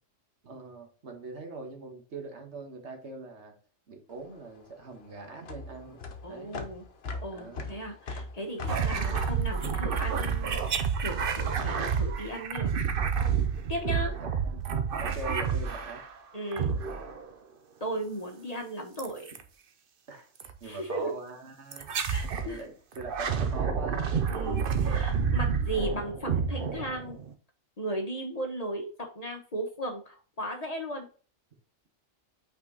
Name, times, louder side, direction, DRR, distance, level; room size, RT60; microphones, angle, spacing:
voice 1, 0.4-3.6 3.9-6.0 6.3-6.6 7.3-7.7 13.8-16.0 20.1-22.0 22.4-24.3, right 3 dB, 70° right, 4 dB, 1.6 m, -43 dB
sound 1, 4.1-10.6, left 3 dB, 60° left, 1.1 m, -40 dB
voice 2, 6.2-6.8 7.2-12.7 13.7-14.1 16.3-16.8 17.8-19.3 20.6-21.1 22.1-22.6 24.3-27.2 27.8-31.0, right 1 dB, 35° left, 3 dB, 1.1 m, -36 dB
sound 2, 8.7-16.1 16.5-17.3 19.0-19.4 20.4-20.6 21.7-22.5 23.0-27.3, right 6 dB, 55° right, 0.8 m, -29 dB
5.8 x 4.6 x 3.9 m, 0.38 s
omnidirectional pair, 1.2 m